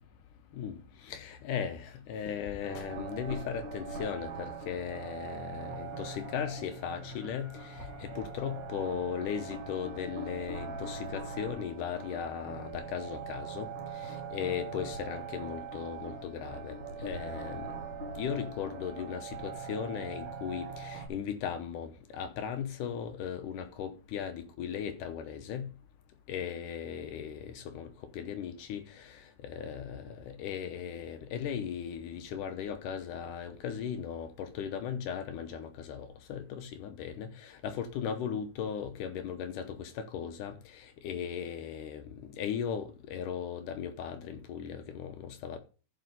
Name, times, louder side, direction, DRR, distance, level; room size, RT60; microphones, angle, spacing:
voice 1, 0.5-17.7 18.1-25.7 26.3-45.6, left 8 dB, 80° left, 2.5 m, -37 dB
sound 1, 2.6-21.1, right 4 dB, 55° right, 3.6 m, -41 dB
14.5 x 5.7 x 4.0 m
omnidirectional pair, 3.8 m